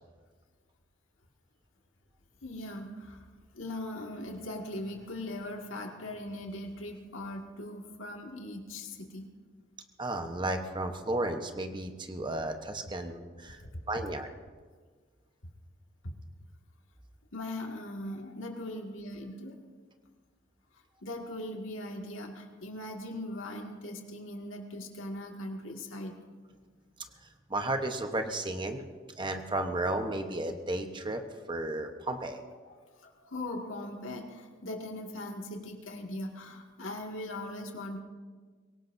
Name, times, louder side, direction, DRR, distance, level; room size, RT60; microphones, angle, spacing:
voice 1, 2.4-3.3 3.5-9.3 13.7-13.8 17.3-19.6 21.0-26.2 32.6-38.0, left 1 dB, 85° left, 1 dB, 2.1 m, -40 dB
voice 2, 10.0-13.6 13.9-14.3 27.5-28.8 29.2-31.2 31.5-32.4, right 2 dB, 25° right, 6 dB, 1.0 m, -33 dB
24.0 x 17.5 x 2.7 m, 1.5 s
head